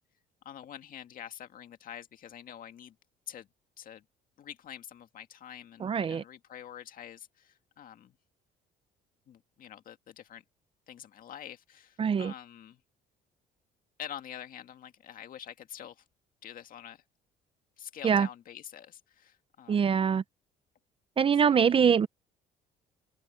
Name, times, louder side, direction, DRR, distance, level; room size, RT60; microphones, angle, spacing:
voice 1, 0.4-3.0 3.3-3.5 3.8-4.0 4.4-8.2 9.3-10.4 10.9-12.8 14.0-16.0 16.4-17.0 17.8-19.8 21.4-21.7, left 10 dB, 55° left, 2.0 m, -46 dB
voice 2, 5.8-6.2 12.0-12.3 18.0-18.3 19.7-20.2 21.2-22.1, right 7 dB, 30° right, 0.6 m, -24 dB
open air
cardioid pair, 110°, 17 cm